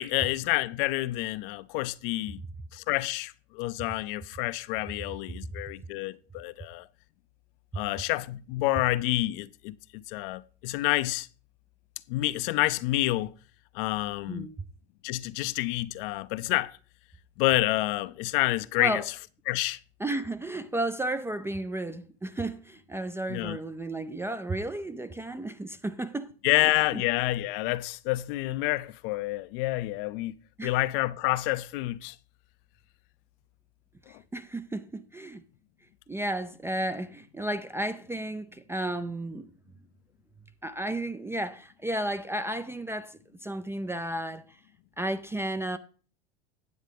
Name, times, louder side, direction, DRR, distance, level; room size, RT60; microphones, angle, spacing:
voice 1, 0.0-2.4 2.7-6.9 7.7-9.7 10.1-11.3 12.1-13.3 13.7-14.5 15.0-16.8 17.4-19.0 19.5-19.8 23.3-23.6 26.4-30.3 30.6-32.2, left 18 dB, 55° left, 0.5 m, -28 dB
voice 2, 14.3-14.6 18.8-19.0 20.0-26.3 26.9-27.0 30.6-30.8 34.1-35.4 36.1-39.5 40.6-44.6 45.0-45.8, right 1 dB, 10° right, 0.3 m, -33 dB
9.5 x 7.9 x 3.4 m
hypercardioid pair, 90°, 33 cm